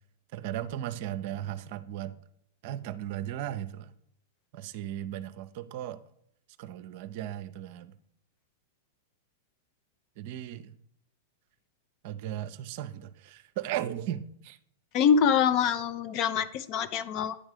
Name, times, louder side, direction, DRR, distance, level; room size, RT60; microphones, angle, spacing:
voice 1, 0.3-2.1 2.6-3.9 4.5-6.0 6.6-7.9 10.2-10.7 12.0-14.6, right 11 dB, 55° right, 12 dB, 0.5 m, -36 dB
voice 2, 14.9-17.4, left 7 dB, 45° left, 12 dB, 0.5 m, -25 dB
9.8 x 3.6 x 5.0 m, 0.72 s
hypercardioid pair, 105°, 0 cm